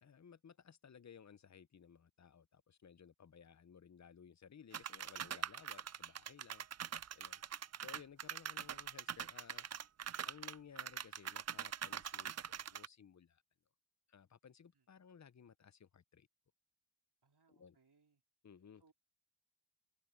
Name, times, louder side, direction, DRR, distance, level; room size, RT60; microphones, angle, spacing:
voice 1, 0.0-6.7 7.1-7.4 7.8-9.7 10.2-13.4 14.1-16.3 17.5-17.8 18.4-18.8, left 7 dB, 40° left, 0.7 m, -59 dB
sound 1, 4.7-12.9, right 9 dB, 40° right, 0.4 m, -43 dB
voice 2, 17.2-18.2 18.8-18.9, right 4 dB, 65° right, 3.8 m, -73 dB
cardioid pair, 55°, 42 cm